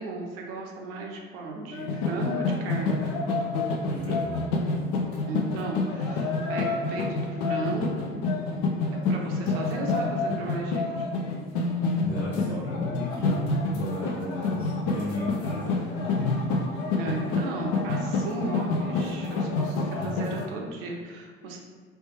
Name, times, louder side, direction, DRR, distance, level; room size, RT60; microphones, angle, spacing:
voice 1, 0.0-3.0 5.3-8.1 9.1-11.1 16.9-21.6, right 2 dB, 65° right, 0 dB, 0.6 m, -35 dB
sound 1, 1.7-20.4, left 3 dB, 55° left, 0.6 m, -28 dB
voice 2, 3.8-4.4 12.0-15.8 16.1-16.5 20.0-20.2, left 2 dB, 85° left, -9 dB, 1.3 m, -33 dB
3.2 x 3.1 x 3.0 m, 1.5 s
figure-of-eight pair, 60°, 31 cm